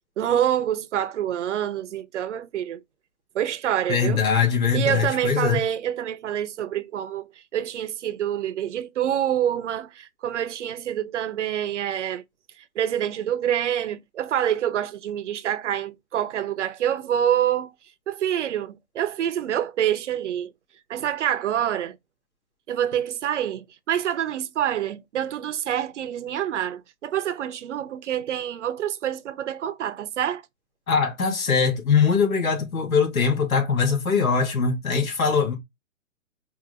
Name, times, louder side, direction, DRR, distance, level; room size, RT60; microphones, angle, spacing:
voice 1, 0.2-2.8 3.3-4.2 4.7-7.3 7.5-12.2 12.6-17.7 18.1-20.5 20.9-22.0 22.7-30.4, right 10 dB, 60° right, 0.7 m, -26 dB
voice 2, 3.9-5.6 30.9-35.6, left 5 dB, 80° left, 2.5 m, -22 dB
4.8 x 2.6 x 3.8 m
hypercardioid pair, 150°, 41 cm